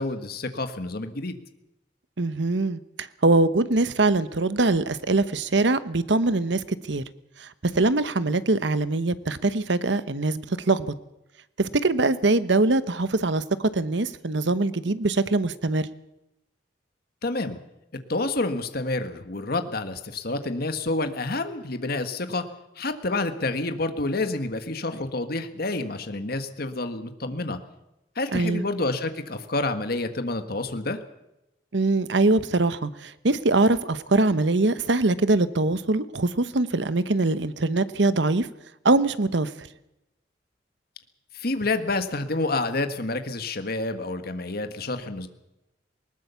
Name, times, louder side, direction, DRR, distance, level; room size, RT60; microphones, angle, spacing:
voice 1, 0.0-1.4 17.2-17.6 17.9-22.5 22.8-27.6 28.1-31.0 41.3-45.3, left 2 dB, 55° left, 8 dB, 1.6 m, -28 dB
voice 2, 2.2-7.0 7.4-10.9 11.6-15.9 28.3-28.7 31.7-38.5 38.8-39.7, right 2 dB, 70° right, 14 dB, 1.0 m, -23 dB
20.0 x 19.0 x 7.0 m, 0.92 s
head